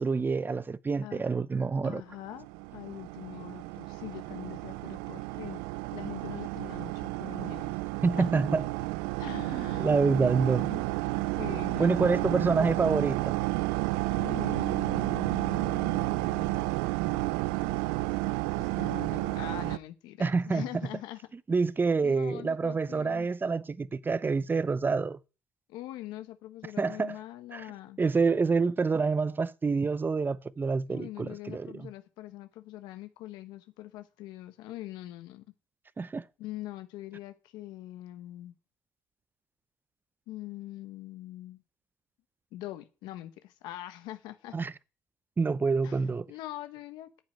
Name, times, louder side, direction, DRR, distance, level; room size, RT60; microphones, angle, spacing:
voice 1, 0.0-2.0 8.0-8.6 9.5-10.7 11.8-13.4 20.2-20.6 21.5-25.2 26.8-27.2 27.5-27.6 28.0-31.7 36.0-36.2 44.5-44.7 45.4-46.3, right 4 dB, 25° right, 0.8 m, -27 dB
voice 2, 1.0-1.3 1.8-2.5 2.7-5.6 5.9-7.7 8.2-8.4 9.2-9.9 10.7-10.8 11.3-12.7 14.1-16.7 18.6-21.2 22.0-23.3 25.7-28.0 30.9-35.4 36.4-38.5 40.3-41.6 42.5-44.6 45.8-47.2, left 15 dB, 80° left, 1.2 m, -43 dB
sound 1, 2.3-19.8, right 20 dB, 90° right, 0.5 m, -31 dB
9.8 x 7.5 x 9.1 m
supercardioid pair, 70°, 7 cm